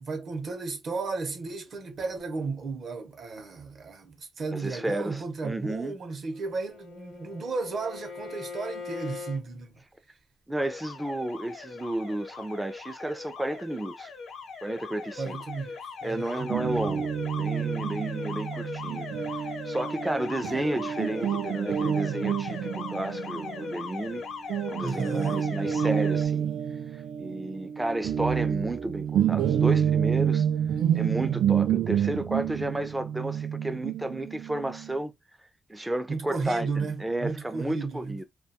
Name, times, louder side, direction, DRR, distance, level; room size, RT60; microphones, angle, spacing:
voice 1, 0.0-9.7 15.2-16.5 24.8-25.5 36.1-38.2, right 4 dB, 50° right, 0.7 m, -34 dB
voice 2, 4.5-6.0 10.5-14.1 14.6-15.4 16.0-24.2 24.7-26.5 26.9-30.5 30.9-35.1 35.7-38.2, right 1 dB, 10° right, 0.3 m, -32 dB
Bowed string instrument, 6.3-9.4, left 4 dB, 65° left, 0.5 m, -41 dB
Alarm, 10.6-26.3, left 5 dB, 85° left, 0.8 m, -39 dB
Guitar, 16.5-24.2 24.5-34.9, right 9 dB, 85° right, 0.3 m, -28 dB
2.3 x 2.2 x 2.7 m
wide cardioid pair, 175°, 0 cm